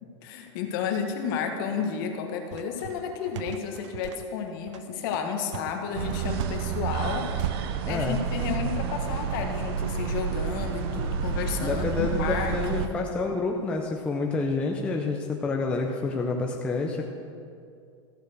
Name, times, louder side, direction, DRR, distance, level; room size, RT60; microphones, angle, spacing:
voice 1, 0.0-7.3 7.9-12.9, left 6 dB, 45° left, 4 dB, 1.3 m, -32 dB
sound 1, 2.5-7.6, right 12 dB, 70° right, 0.4 m, -38 dB
sound 2, 5.9-12.9, right 7 dB, 50° right, 0.8 m, -30 dB
voice 2, 7.8-8.2 11.6-17.0, left 3 dB, 5° left, 1 dB, 0.5 m, -28 dB
14.0 x 6.6 x 6.5 m, 2.4 s
supercardioid pair, 165°, 16 cm